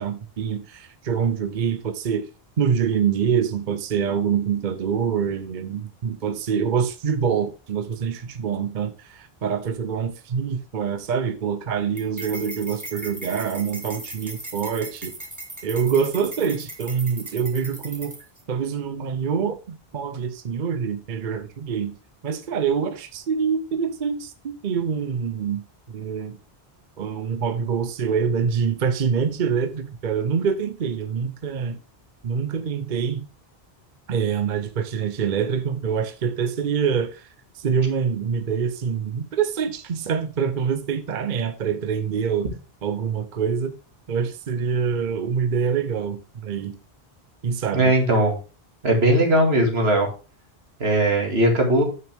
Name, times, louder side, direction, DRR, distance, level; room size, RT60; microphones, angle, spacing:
voice 1, 0.0-2.3 2.6-15.1 15.6-18.2 18.5-21.9 22.2-25.6 25.9-26.4 27.0-31.8 32.2-33.3 34.1-42.5 42.8-43.8 44.1-46.7 47.4-47.9, right 6 dB, 55° right, 0.8 m, -25 dB
sound 1, 12.0-18.4, right 1 dB, 15° right, 1.5 m, -38 dB
voice 2, 47.7-48.3 48.8-50.1 50.8-51.8, right 1 dB, 80° right, 2.3 m, -19 dB
9.1 x 6.0 x 3.4 m
omnidirectional pair, 1.1 m